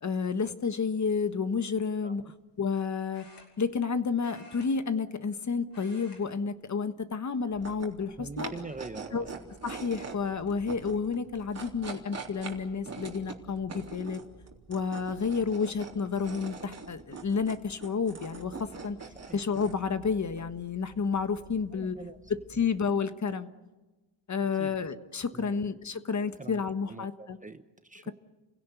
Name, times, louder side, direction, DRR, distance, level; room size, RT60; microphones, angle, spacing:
voice 1, 0.0-2.2 2.6-3.2 3.6-8.5 9.1-9.3 9.6-14.2 14.7-19.0 19.3-21.9 22.3-23.5 24.3-27.4, left 5 dB, 35° left, 11 dB, 1.4 m, -30 dB
sound 1, 1.2-1.5 3.1-3.9 4.2-5.4 5.6-6.2 6.5-6.8 7.6-8.1 8.7-8.8 10.2-10.3 10.6-11.0, left 3 dB, 55° left, 6.7 m, -55 dB
sound 2, 7.5-22.9, right 4 dB, 30° right, 3.5 m, -44 dB
voice 2, 8.2-9.4 19.2-19.4 21.7-22.2 24.4-24.7 25.3-25.7 26.4-26.6 26.9-28.1, right 3 dB, 15° right, 9 dB, 1.0 m, -44 dB
30.0 x 17.0 x 8.3 m, 1.2 s
cardioid pair, 115°, 49 cm